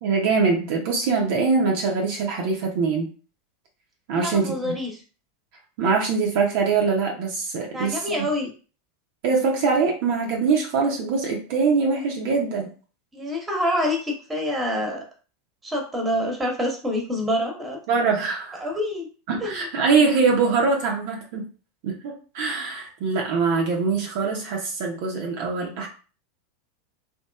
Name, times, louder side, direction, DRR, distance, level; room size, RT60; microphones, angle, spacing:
voice 1, 0.0-3.1 4.1-4.7 5.8-8.3 9.2-12.7 17.9-18.7 19.3-21.5 21.8-25.9, right 4 dB, 55° right, -1 dB, 0.7 m, -23 dB
voice 2, 4.1-5.0 7.7-8.5 13.1-15.0 15.6-17.8 18.6-19.1 19.4-19.6, left 1 dB, 15° right, 1 dB, 1.1 m, -26 dB
3.0 x 2.7 x 2.3 m, 0.36 s
figure-of-eight pair, 85°, 0 cm